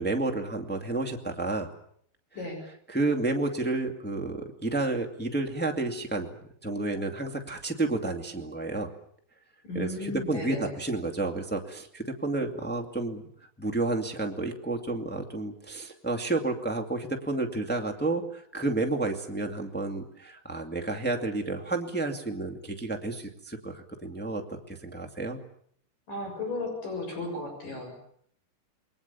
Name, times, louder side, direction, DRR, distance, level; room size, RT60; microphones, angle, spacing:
voice 1, 0.0-1.7 2.9-6.3 6.6-8.9 9.7-13.2 13.6-25.4, right 2 dB, 5° left, 2 dB, 0.8 m, -31 dB
voice 2, 9.6-10.7 26.1-28.1, left 2 dB, 50° left, 2 dB, 8.7 m, -35 dB
28.5 x 21.5 x 7.1 m, 0.65 s
omnidirectional pair, 5.0 m